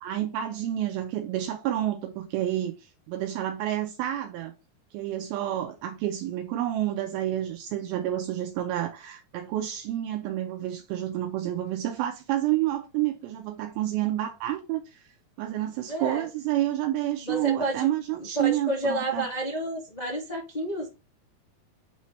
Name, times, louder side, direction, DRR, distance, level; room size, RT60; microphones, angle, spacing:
voice 1, 0.0-4.5 4.9-15.1 15.4-19.3, right 13 dB, 80° right, 2.3 m, -29 dB
voice 2, 15.9-16.3 17.2-17.9 18.2-20.9, right 1 dB, 75° left, 0.3 m, -30 dB
8.2 x 3.2 x 4.0 m
omnidirectional pair, 4.6 m